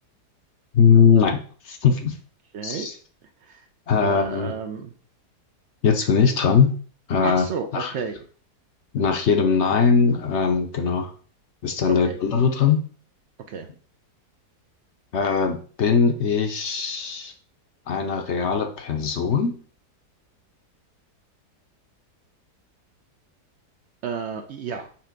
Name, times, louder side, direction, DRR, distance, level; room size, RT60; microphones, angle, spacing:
voice 1, 0.7-1.4 1.6-2.2 2.6-2.9 3.9-4.5 5.8-6.7 7.1-7.4 7.7-7.9 8.9-11.1 11.6-12.8 15.1-17.3 17.9-19.6, left 6 dB, 55° left, 5 dB, 0.8 m, -20 dB
voice 2, 2.5-2.9 3.4-3.7 4.0-4.9 7.2-8.2 12.0-12.2 13.5-13.7 24.0-24.9, right 6 dB, 65° right, 5 dB, 0.7 m, -32 dB
5.8 x 3.3 x 5.1 m, 0.43 s
omnidirectional pair, 1.7 m